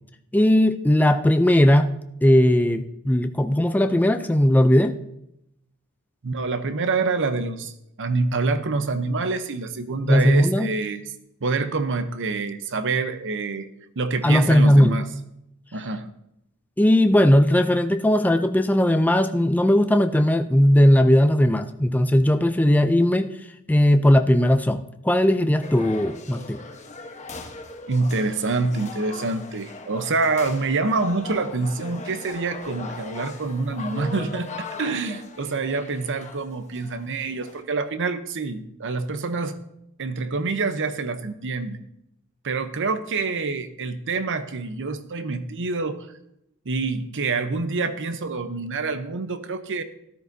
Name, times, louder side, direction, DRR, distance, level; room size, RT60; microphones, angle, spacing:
voice 1, 0.3-1.9 2.2-5.0 10.0-10.7 14.2-15.0 16.8-23.3 23.7-26.6, left 1 dB, 10° left, 8 dB, 0.4 m, -18 dB
voice 2, 6.2-11.0 11.4-13.7 14.0-15.1 15.7-16.1 27.9-39.6 40.0-41.8 42.4-46.1 46.7-49.8, right 3 dB, 60° right, 10 dB, 0.8 m, -26 dB
sound 1, 25.6-37.6, left 3 dB, 35° left, 1.1 m, -39 dB
13.5 x 12.5 x 2.7 m, 0.81 s
head